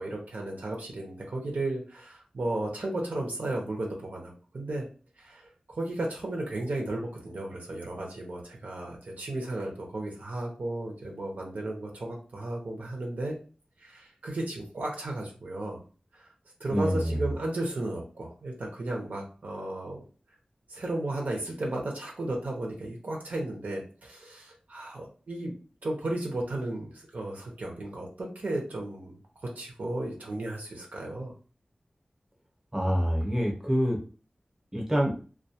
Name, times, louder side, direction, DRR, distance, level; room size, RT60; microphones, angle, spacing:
voice 1, 0.0-4.9 5.2-13.4 13.8-15.8 16.1-16.3 16.6-20.0 20.7-25.5 25.8-29.2 29.6-31.3, right 2 dB, 80° right, 0 dB, 0.7 m, -34 dB
voice 2, 16.7-17.2 32.7-34.0 34.7-35.1, equal, 15° right, -1 dB, 0.8 m, -26 dB
2.3 x 2.2 x 2.7 m, 0.37 s
wide cardioid pair, 75°, 3 cm